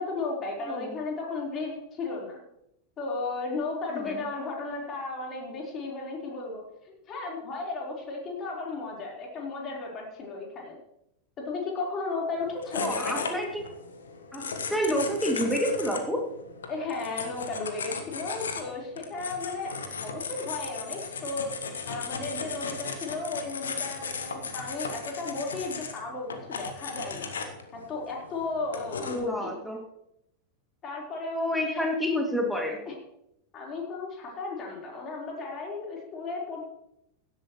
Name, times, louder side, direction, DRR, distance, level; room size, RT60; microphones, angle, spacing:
voice 1, 0.0-2.4 3.0-10.8 11.4-12.9 16.7-21.5 21.9-27.3 27.7-29.5 30.8-31.9 32.9-33.0 33.5-36.7, left 3 dB, 30° left, -2 dB, 4.3 m, -34 dB
voice 2, 0.6-1.0 3.9-4.2 12.7-13.6 14.3-16.2 29.0-29.8 31.3-32.8, equal, ahead, 1 dB, 2.6 m, -29 dB
sound 1, 12.4-29.2, left 5 dB, 70° left, 1.4 m, -37 dB
17.0 x 12.5 x 3.2 m, 0.81 s
figure-of-eight pair, 90°, 0 cm